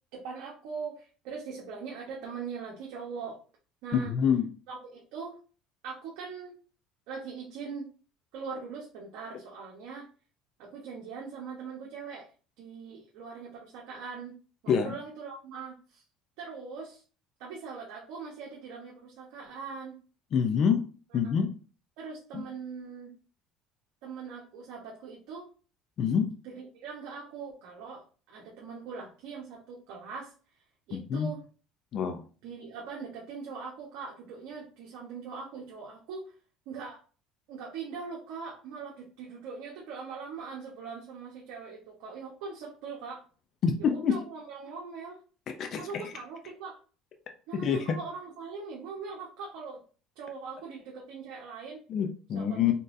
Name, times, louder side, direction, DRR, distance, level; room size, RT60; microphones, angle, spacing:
voice 1, 0.1-3.4 3.8-4.1 4.7-5.4 5.8-6.5 7.1-7.9 8.3-10.1 10.6-12.3 12.6-14.3 14.6-16.0 16.4-17.0 17.4-20.0 22.0-23.1 24.0-25.5 26.4-30.3 30.9-31.4 32.4-36.3 36.7-37.0 37.5-43.2 43.8-45.2 45.8-46.8 47.5-49.8 50.2-51.8 52.3-52.7, right 5 dB, 75° right, -3 dB, 1.1 m, -41 dB
voice 2, 3.9-4.5 14.7-14.9 20.3-20.8 21.1-21.5 22.3-22.4 26.0-26.3 30.9-31.3 31.9-32.2 43.6-44.1 45.6-46.1 47.6-47.9 51.9-52.7, left 7 dB, 45° left, 5 dB, 0.5 m, -26 dB
3.9 x 3.9 x 2.6 m, 0.38 s
cardioid pair, 135°, 0 cm